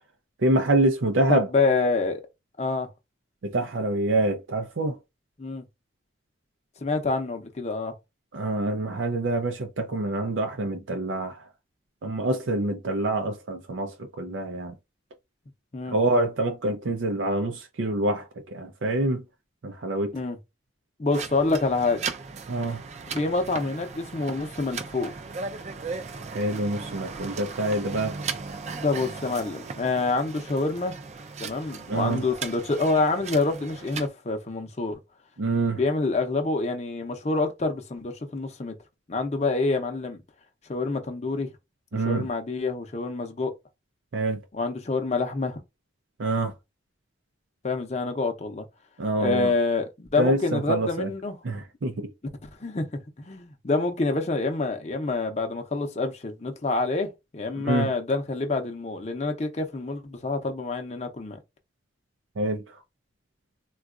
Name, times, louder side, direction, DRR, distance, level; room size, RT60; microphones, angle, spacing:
voice 1, 0.4-1.5 3.4-5.0 8.3-11.5 12.0-14.7 15.9-19.2 19.6-20.1 22.5-22.8 26.3-28.2 31.9-32.2 35.4-35.8 41.9-42.3 44.1-44.4 46.2-46.5 49.0-49.5 50.2-51.1 51.4-52.1 57.6-57.9 62.4-62.6, right 2 dB, 90° right, 0.5 m, -26 dB
voice 2, 1.3-2.2 2.6-2.9 5.4-5.6 6.8-7.9 15.7-16.0 20.1-20.4 21.0-22.0 23.1-25.1 28.8-30.9 31.4-35.0 35.8-38.7 39.1-40.2 40.7-41.5 41.9-43.5 44.5-45.6 47.6-48.6 49.2-51.4 52.4-52.9 53.2-61.4, left 3 dB, 35° left, 0.6 m, -27 dB
sound 1, 21.1-34.1, right 4 dB, 35° right, 0.4 m, -37 dB
3.7 x 2.3 x 2.4 m
head